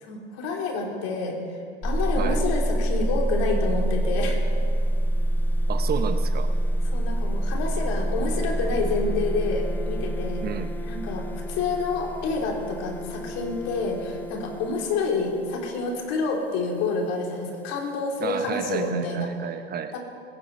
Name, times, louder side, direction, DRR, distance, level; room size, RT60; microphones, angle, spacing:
voice 1, 0.0-1.6 1.8-4.4 6.9-10.4 10.8-19.3 19.9-20.0, left 3 dB, 50° left, 1 dB, 3.3 m, -28 dB
sound 1, 1.8-16.3, right 1 dB, 5° left, 0.7 m, -27 dB
voice 2, 5.7-6.5 10.4-10.7 18.2-20.0, right 8 dB, 30° right, 9 dB, 0.7 m, -31 dB
22.0 x 9.9 x 5.4 m, 2.4 s
hypercardioid pair, 85°, 32 cm